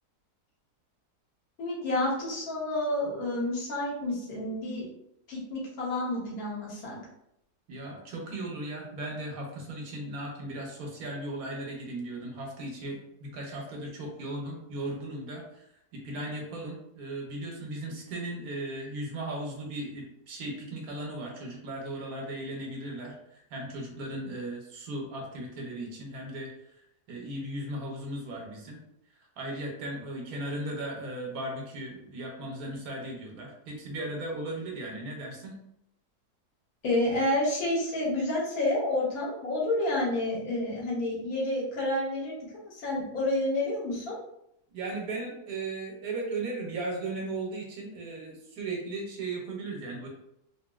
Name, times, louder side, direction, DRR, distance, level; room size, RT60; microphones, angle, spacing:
voice 1, 1.6-4.9 5.3-7.0 36.8-42.4 42.7-44.2, left 1 dB, 65° left, -4 dB, 1.4 m, -29 dB
voice 2, 7.7-26.5 27.1-28.8 29.4-35.6 44.7-50.1, right 2 dB, 70° right, 0 dB, 1.2 m, -37 dB
3.0 x 2.6 x 2.3 m, 0.79 s
omnidirectional pair, 1.7 m